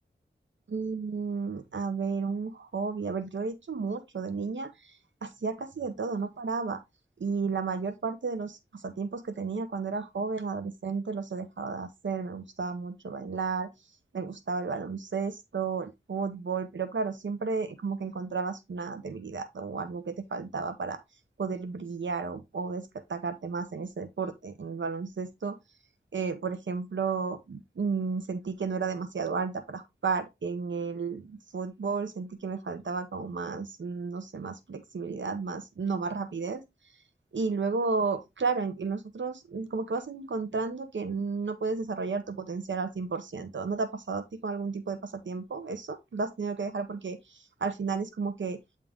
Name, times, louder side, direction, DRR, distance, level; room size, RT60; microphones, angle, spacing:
voice 1, 0.7-6.8 7.2-21.0 21.4-25.6 26.1-37.0 37.3-48.6, right 4 dB, 90° right, 0.8 m, -33 dB
9.0 x 3.8 x 3.6 m
wide cardioid pair, 70°, 19 cm